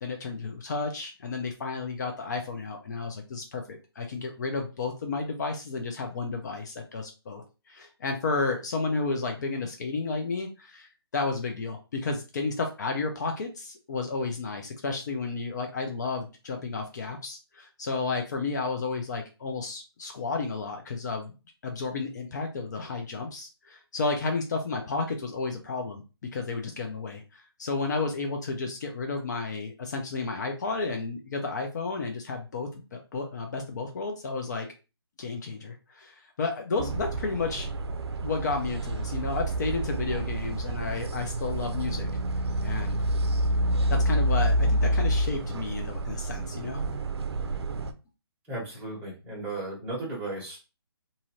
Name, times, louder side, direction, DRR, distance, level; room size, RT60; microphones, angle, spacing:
voice 1, 0.0-21.3 21.6-34.7 35.2-37.7 38.2-42.1 42.6-43.0 43.9-46.8, left 4 dB, 40° left, 3 dB, 0.5 m, -32 dB
sound 1, 36.8-47.9, right 1 dB, 75° right, 0.5 m, -28 dB
voice 2, 48.5-50.6, right 2 dB, 10° right, -6 dB, 1.2 m, -35 dB
2.6 x 2.5 x 3.0 m, 0.31 s
hypercardioid pair, 155°, 14 cm